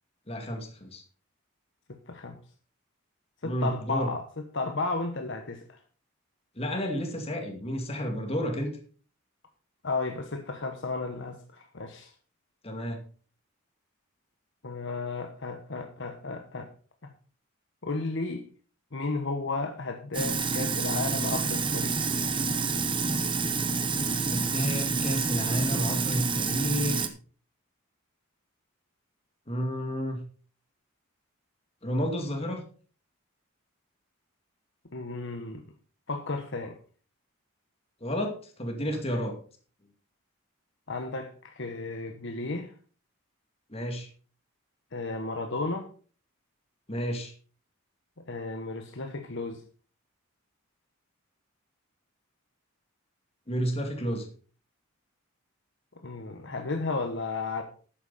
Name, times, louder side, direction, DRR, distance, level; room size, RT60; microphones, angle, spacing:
voice 1, 0.3-1.0 3.4-4.1 6.6-8.7 12.6-13.0 24.3-27.1 29.5-30.2 31.8-32.6 38.0-39.4 43.7-44.1 46.9-47.3 53.5-54.3, equal, 30° left, 2.4 m, -31 dB
voice 2, 1.9-2.4 3.4-4.2 4.5-5.8 9.8-12.1 14.6-16.7 17.0-17.1 17.8-18.5 18.9-22.1 34.9-35.6 36.1-36.8 40.9-42.7 44.9-45.9 48.3-49.6 56.0-57.6, left 3 dB, 60° left, 1.2 m, -33 dB
Sink (filling or washing), 20.1-27.1, right 4 dB, 25° right, 1.0 m, -28 dB
11.5 x 9.1 x 4.2 m
head